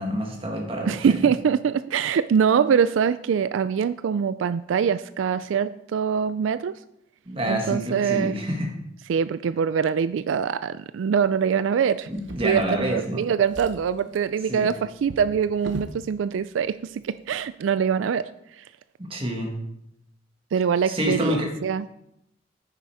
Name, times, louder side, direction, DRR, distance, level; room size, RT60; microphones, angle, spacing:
voice 1, 0.0-1.2 7.2-8.7 12.1-13.2 14.5-14.7 19.0-19.6 20.8-21.5, equal, 30° right, 1 dB, 1.8 m, -28 dB
voice 2, 0.8-6.7 7.5-8.4 9.1-12.1 12.4-18.3 18.6-18.7 20.5-21.8, right 7 dB, 85° right, 14 dB, 0.3 m, -23 dB
Drawer open or close, 12.1-13.1 13.4-16.0 16.9-17.0 17.4-17.5, right 2 dB, 70° right, 0.9 m, -40 dB
9.9 x 6.9 x 4.8 m, 0.80 s
head